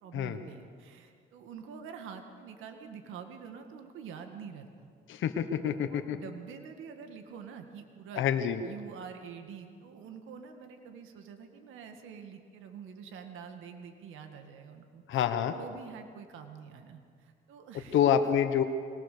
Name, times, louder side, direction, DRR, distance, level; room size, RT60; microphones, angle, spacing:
voice 1, 0.0-4.9 5.6-8.3 8.6-18.0, right 6 dB, 90° right, 6 dB, 1.9 m, -46 dB
voice 2, 5.1-6.2 8.2-8.6 15.1-15.5 17.9-18.6, left 9 dB, 80° left, 7 dB, 1.2 m, -27 dB
22.0 x 19.0 x 6.8 m, 2.2 s
cardioid pair, 90°, 20 cm